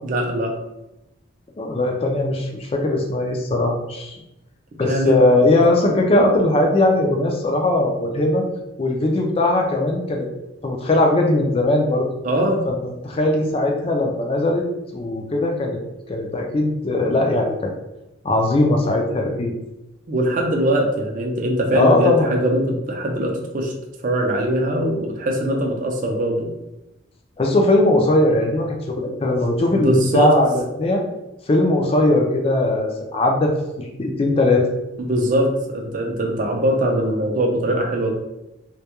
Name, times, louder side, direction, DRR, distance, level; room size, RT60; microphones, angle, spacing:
voice 1, 0.0-0.5 4.8-5.1 12.2-12.6 20.1-23.7 24.0-26.5 29.7-30.3 35.0-38.1, right 1 dB, 40° right, 1 dB, 0.4 m, -21 dB
voice 2, 1.6-4.2 4.8-8.5 8.8-10.3 10.6-12.1 12.7-12.8 13.0-14.6 14.9-15.8 16.1-17.7 18.2-19.5 21.7-22.3 27.4-31.0 31.5-34.7, left 2 dB, 30° left, 1 dB, 0.3 m, -19 dB
2.2 x 2.1 x 2.8 m, 0.94 s
head